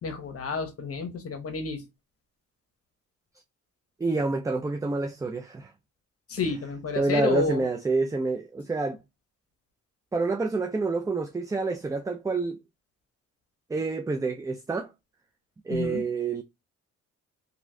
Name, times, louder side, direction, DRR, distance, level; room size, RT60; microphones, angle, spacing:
voice 1, 0.0-1.8 6.3-7.6 15.7-16.0, left 4 dB, 50° left, 0.9 m, -30 dB
voice 2, 4.0-5.7 7.0-9.0 10.1-12.6 13.7-14.9 15.7-16.4, right 3 dB, 10° right, 0.4 m, -28 dB
3.0 x 2.7 x 2.5 m
cardioid pair, 90°, 30 cm